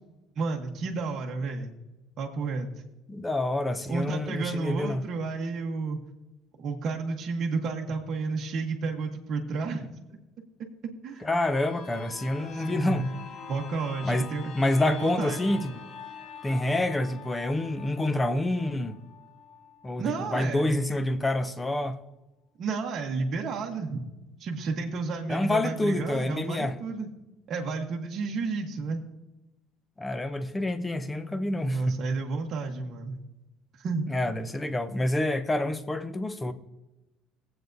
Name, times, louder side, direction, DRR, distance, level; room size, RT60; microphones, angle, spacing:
voice 1, 0.4-1.7 2.2-2.7 3.9-6.0 6.6-9.9 11.0-11.4 12.4-13.0 13.5-14.5 14.8-15.5 20.0-20.8 22.6-24.0 24.4-27.1 27.5-29.0 31.6-33.1 33.8-34.0, right 4 dB, 40° right, 1.1 m, -31 dB
voice 2, 3.1-5.0 11.2-13.1 14.0-14.3 14.5-15.8 16.4-19.0 19.8-22.0 25.3-26.8 30.0-32.0 34.1-36.5, left 1 dB, 10° left, 0.5 m, -27 dB
sound 1, 11.1-20.7 21.1-21.2, left 6 dB, 35° left, 1.0 m, -45 dB
18.5 x 7.9 x 2.6 m
cardioid pair, 160°, 0 cm